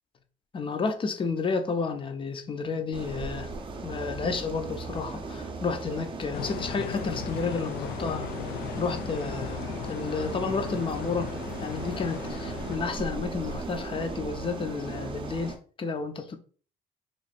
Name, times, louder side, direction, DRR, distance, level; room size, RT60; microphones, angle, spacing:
voice 1, 0.5-3.5 3.8-8.3 8.8-11.3 11.6-16.4, left 4 dB, 30° left, 0.6 m, -31 dB
sound 1, 2.9-15.6, right 3 dB, 30° right, 0.7 m, -37 dB
sound 2, 6.3-12.8, left 9 dB, 80° left, 0.4 m, -37 dB
3.1 x 2.6 x 4.1 m
cardioid pair, 110°, 17 cm